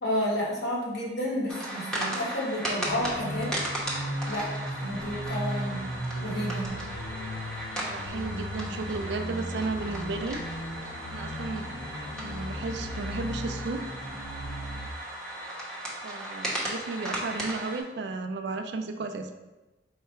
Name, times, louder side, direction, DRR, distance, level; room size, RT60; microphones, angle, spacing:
voice 1, 0.0-3.6 4.2-4.5 4.8-5.8 6.2-6.7, left 1 dB, 70° left, -4 dB, 1.2 m, -31 dB
sound 1, 1.5-17.8, right 1 dB, 5° left, 0.8 m, -36 dB
sound 2, 2.9-14.9, equal, 85° left, 0.6 m, -36 dB
voice 2, 7.8-10.4 11.1-11.7 12.2-14.0 16.0-19.3, right 3 dB, 70° right, 7 dB, 0.4 m, -34 dB
4.7 x 2.2 x 4.3 m, 1.1 s
head